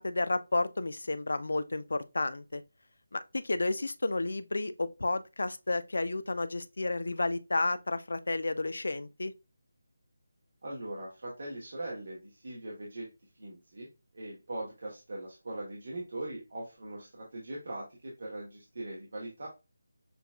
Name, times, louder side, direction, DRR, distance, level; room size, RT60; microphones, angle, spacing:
voice 1, 0.0-2.6 3.1-9.3, left 2 dB, 75° left, 0.4 m, -31 dB
voice 2, 10.6-13.1 13.3-13.9 14.1-19.5, right 1 dB, 55° right, 1.2 m, -40 dB
6.7 x 2.4 x 2.3 m
figure-of-eight pair, 170°, 0 cm